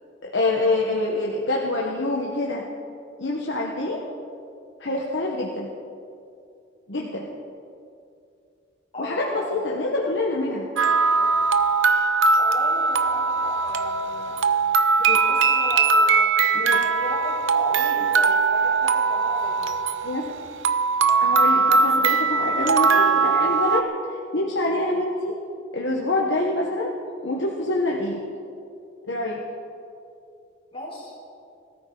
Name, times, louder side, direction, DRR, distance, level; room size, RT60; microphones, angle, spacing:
voice 1, 0.2-2.6 3.2-4.0 4.8-5.7 6.9-7.3 9.0-10.7 15.0-15.2 16.5-16.8 20.0-20.2 21.2-25.3 25.7-26.9 27.2-28.2 29.1-29.4, left 2 dB, 65° left, -2 dB, 1.4 m, -26 dB
voice 2, 8.9-9.5 11.2-11.5 12.4-14.4 15.3-16.3 16.7-19.7 30.7-31.1, left 1 dB, 30° left, -5 dB, 4.8 m, -36 dB
sound 1, 10.8-23.8, right 4 dB, 80° right, 0.7 m, -20 dB
20.5 x 13.5 x 4.0 m, 2.5 s
head